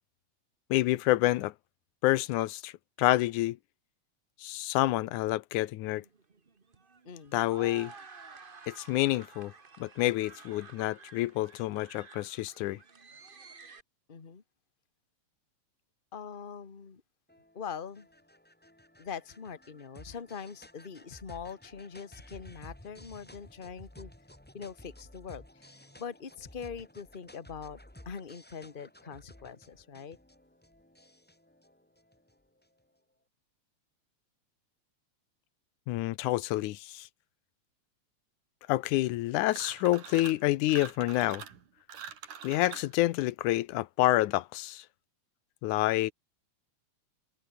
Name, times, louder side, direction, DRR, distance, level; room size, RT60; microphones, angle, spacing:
voice 1, 0.7-1.5 2.0-2.7 3.0-3.6 4.4-6.0 7.3-7.9 8.7-9.5 9.8-12.8 35.9-37.1 38.7-41.4 42.4-44.9 45.6-46.1, left 17 dB, 90° left, 2.2 m, -28 dB
sound 1, 5.8-13.8, right 4 dB, 45° right, 0.6 m, -52 dB
voice 2, 7.0-7.4 14.1-14.4 16.1-17.0 17.5-18.1 19.0-24.1 24.5-27.8 28.0-30.2, left 6 dB, 30° left, 0.9 m, -43 dB
sound 2, 17.3-32.8, left 1 dB, 10° left, 0.7 m, -54 dB
sound 3, 39.5-40.4 40.7-42.9, right 8 dB, 85° right, 4.1 m, -44 dB
omnidirectional pair, 3.5 m